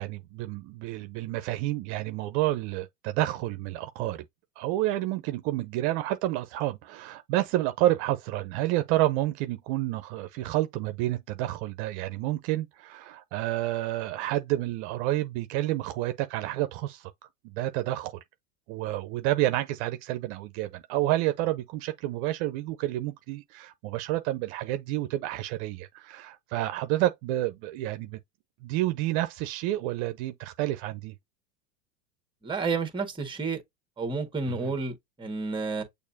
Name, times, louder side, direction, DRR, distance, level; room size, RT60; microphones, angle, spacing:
voice 1, 0.0-4.2 4.6-17.1 17.4-18.2 18.7-28.2 28.6-31.1 34.5-34.7, right 15 dB, 55° right, 0.7 m, -29 dB
voice 2, 32.4-33.6 34.0-35.8, right 4 dB, 10° right, 1.6 m, -30 dB
6.5 x 2.7 x 2.7 m
supercardioid pair, 120°, 40 cm